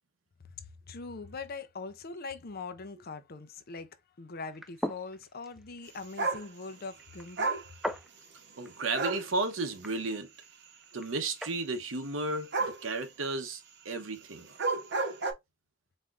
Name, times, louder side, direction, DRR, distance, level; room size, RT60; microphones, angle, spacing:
voice 1, 0.6-3.9 4.2-7.6, left 4 dB, 50° left, 0.6 m, -42 dB
sound 1, 4.5-11.6, equal, ahead, 0.4 m, -43 dB
sound 2, 6.2-6.4 7.4-7.7 8.9-9.3 12.5-12.8 14.5-15.3, right 3 dB, 60° right, 1.0 m, -30 dB
voice 2, 8.6-10.3 10.9-14.5, right 3 dB, 80° right, 1.0 m, -33 dB
4.3 x 3.5 x 2.5 m
head